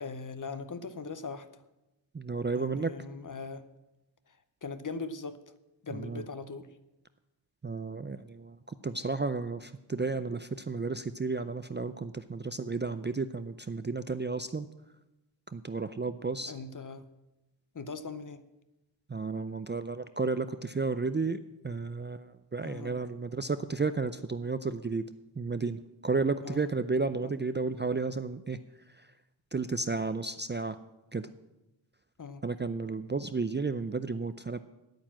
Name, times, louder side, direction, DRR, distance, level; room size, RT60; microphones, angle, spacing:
voice 1, 0.0-1.6 2.6-3.7 4.6-5.4 5.8-6.7 16.5-17.0 17.7-18.4 22.6-23.0 26.4-26.7 27.2-27.3 32.2-32.4, left 4 dB, 40° left, 0.7 m, -40 dB
voice 2, 2.1-2.9 5.9-6.2 7.6-8.5 8.8-14.7 15.5-16.5 19.1-21.4 21.6-25.0 25.4-28.6 29.5-30.8 31.1-31.3 32.4-34.6, right 4 dB, 25° right, 0.4 m, -32 dB
9.3 x 9.1 x 7.4 m
wide cardioid pair, 80°, 46 cm